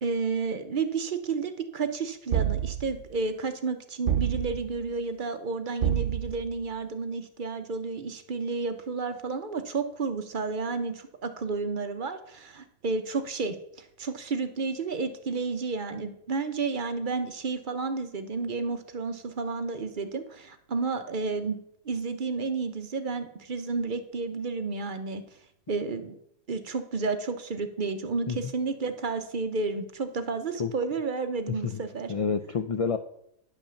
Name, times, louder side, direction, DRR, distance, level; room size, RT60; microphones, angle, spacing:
voice 1, 0.0-21.6 21.9-25.2 25.7-26.2 26.5-32.1, right 4 dB, 45° right, 9 dB, 0.8 m, -31 dB
sound 1, 2.3-3.1 4.1-4.8 5.8-6.6, right 10 dB, 80° right, 1.0 m, -28 dB
voice 2, 32.1-33.0, left 5 dB, 65° left, 9 dB, 0.3 m, -28 dB
10.0 x 5.3 x 6.9 m, 0.74 s
omnidirectional pair, 1.3 m